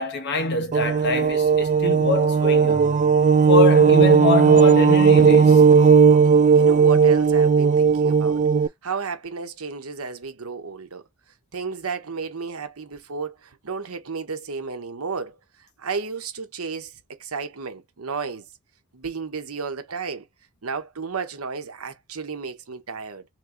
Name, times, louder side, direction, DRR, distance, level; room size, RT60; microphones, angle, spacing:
voice 1, 0.0-3.0 3.5-5.7, left 4 dB, 50° left, 1.0 m, -25 dB
sound 1, 0.7-8.7, right 5 dB, 35° right, 0.3 m, -16 dB
voice 2, 6.5-8.5 8.8-11.0 11.5-18.5 18.9-20.3 20.6-23.3, right 5 dB, 85° right, 1.0 m, -33 dB
3.1 x 3.0 x 3.8 m
head